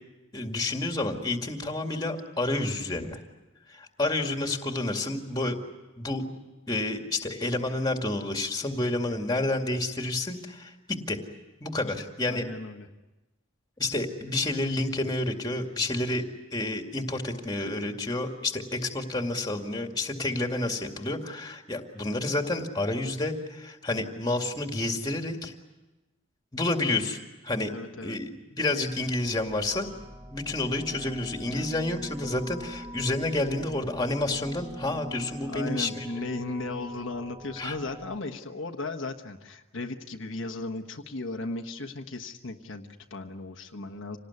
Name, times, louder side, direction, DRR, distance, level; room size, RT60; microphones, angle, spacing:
voice 1, 0.3-3.2 3.7-5.6 6.0-6.2 6.7-11.2 11.6-12.4 13.8-16.2 16.5-25.5 26.5-27.2 27.4-27.7 28.0-29.9 30.3-36.1 37.6-37.8, left 2 dB, 20° left, 4 dB, 2.2 m, -29 dB
voice 2, 12.3-12.9 27.7-28.2 31.5-31.7 35.4-44.2, left 2 dB, 65° left, 3 dB, 1.3 m, -36 dB
sound 1, 28.8-38.2, equal, 10° right, 1.2 m, -42 dB
27.0 x 18.5 x 9.6 m, 1.1 s
head